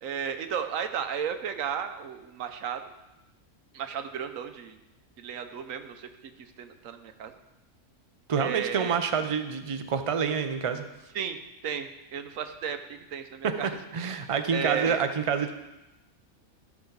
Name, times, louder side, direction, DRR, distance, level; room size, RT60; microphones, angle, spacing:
voice 1, 0.0-2.8 3.7-4.8 5.2-6.1 6.4-7.3 8.4-9.0 11.1-11.4 11.6-13.7 14.5-15.0, right 7 dB, 75° right, 8 dB, 1.1 m, -34 dB
voice 2, 8.3-10.8 13.4-13.5 13.9-15.5, right 6 dB, 40° right, 8 dB, 0.5 m, -27 dB
14.0 x 6.0 x 3.9 m, 0.98 s
omnidirectional pair, 1.4 m